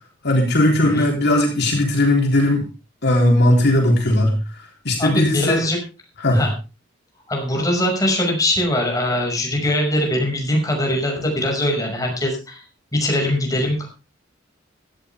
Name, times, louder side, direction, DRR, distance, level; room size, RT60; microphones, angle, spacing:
voice 1, 0.2-2.6 3.0-4.4 4.9-5.6 6.2-6.5, left 1 dB, 60° left, 1 dB, 3.5 m, -17 dB
voice 2, 5.0-5.8 6.3-6.5 7.3-12.6 12.9-13.9, left 1 dB, 20° left, 1 dB, 5.8 m, -21 dB
16.5 x 14.0 x 3.5 m, 0.31 s
head